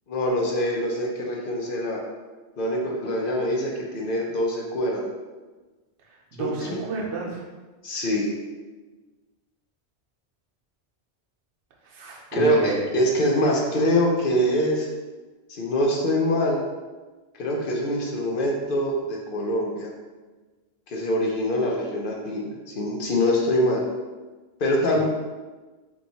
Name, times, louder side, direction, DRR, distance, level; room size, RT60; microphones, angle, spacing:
voice 1, 0.1-2.0 2.6-5.1 6.4-6.5 7.8-8.3 12.3-14.9 15.5-16.6 17.3-19.9 20.9-23.8 24.6-25.0, equal, 60° left, -1 dB, 0.7 m, -24 dB
voice 2, 6.1-7.5 11.8-12.8, right 4 dB, 80° right, -2 dB, 1.0 m, -31 dB
3.0 x 2.3 x 3.9 m, 1.3 s
omnidirectional pair, 1.1 m